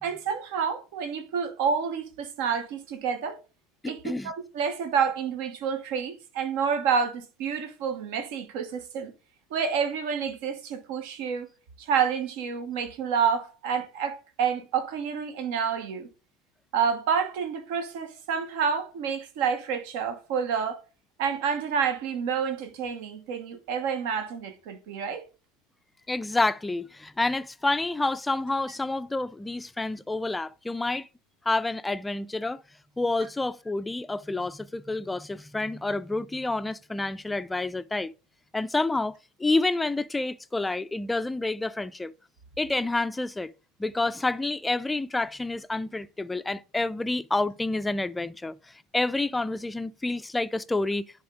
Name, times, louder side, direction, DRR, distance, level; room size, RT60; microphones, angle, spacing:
voice 1, 0.0-3.4 3.8-9.1 9.5-11.5 11.8-16.1 16.7-20.8 21.2-25.3, right 6 dB, 60° right, 1.1 m, -29 dB
voice 2, 3.8-4.3 26.1-31.1 31.5-32.6 33.0-38.1 38.5-42.1 42.6-43.5 43.8-51.0, left 2 dB, 10° left, 0.4 m, -28 dB
10.0 x 3.6 x 3.7 m
figure-of-eight pair, 70°, 0 cm